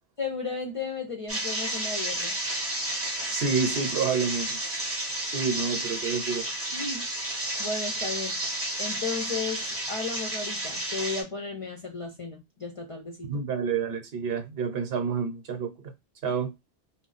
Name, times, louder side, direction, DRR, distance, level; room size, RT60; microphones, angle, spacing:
voice 1, 0.2-2.4 6.7-8.4 8.8-13.3, left 4 dB, 45° left, 0.4 m, -34 dB
sound 1, 1.3-11.2, right 1 dB, 15° right, 0.5 m, -31 dB
voice 2, 3.3-4.6 5.3-6.4 13.3-15.9 16.2-16.5, right 5 dB, 70° right, 0.9 m, -28 dB
2.3 x 2.0 x 3.8 m
omnidirectional pair, 1.1 m